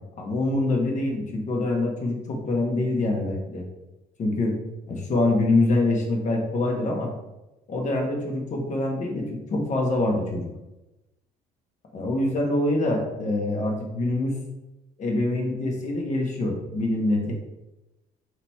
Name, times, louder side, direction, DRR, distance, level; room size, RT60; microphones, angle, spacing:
voice 1, 0.2-3.6 4.2-4.6 4.9-7.1 7.7-10.5 11.9-14.4 15.0-17.3, left 2 dB, 45° left, 1 dB, 1.2 m, -25 dB
4.0 x 2.9 x 4.4 m, 0.98 s
cardioid pair, 110°, 17 cm